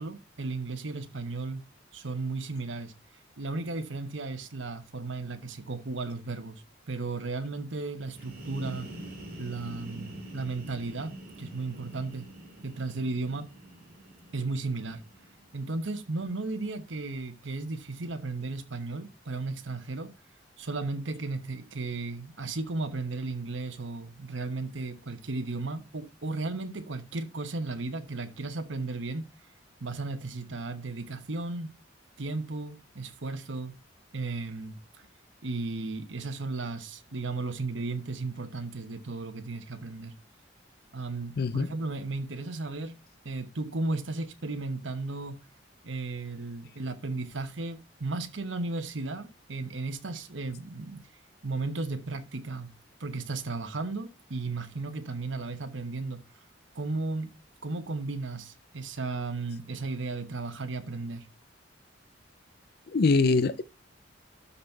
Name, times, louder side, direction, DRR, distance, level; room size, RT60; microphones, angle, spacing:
voice 1, 0.0-1.6 1.9-2.9 3.4-8.9 9.4-12.3 12.6-13.5 14.3-15.0 15.5-20.1 20.6-29.3 29.8-31.8 32.2-33.7 34.1-35.1 35.4-40.2 40.9-43.0 43.2-45.4 45.8-51.1 51.4-52.7 53.0-56.4 56.7-57.3 57.6-61.3, right 3 dB, 75° right, 1.1 m, -35 dB
sound 1, 8.0-15.6, right 1 dB, 50° right, 3.1 m, -45 dB
voice 2, 41.4-41.7 62.9-63.6, left 3 dB, 55° left, 0.5 m, -23 dB
12.5 x 4.2 x 4.4 m
head